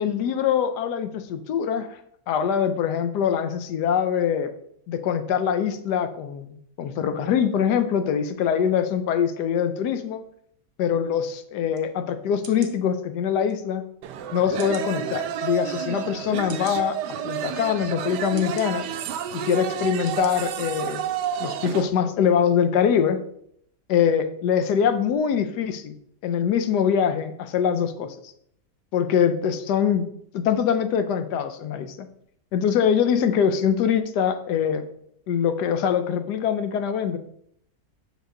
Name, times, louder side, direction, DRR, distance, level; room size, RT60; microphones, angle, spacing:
voice 1, 0.0-2.0 2.3-4.5 4.9-10.2 10.8-13.8 14.3-17.0 17.2-18.9 19.3-21.0 21.4-23.2 23.9-26.0 26.2-28.2 28.9-30.1 30.3-32.1 32.5-34.9 35.3-37.2, left 8 dB, 80° left, 9 dB, 1.2 m, -23 dB
sound 1, 11.7-11.9 12.4-12.7 13.5-13.6 14.6-14.9 15.6-15.7 16.5-16.8 17.6-17.7 18.4-18.7 19.4-19.5 20.1-20.3 20.7-20.8, right 5 dB, 50° right, 0.6 m, -44 dB
sound 2, 14.0-21.9, right 9 dB, 80° right, 1.1 m, -30 dB
6.4 x 5.1 x 3.8 m, 0.70 s
omnidirectional pair, 1.8 m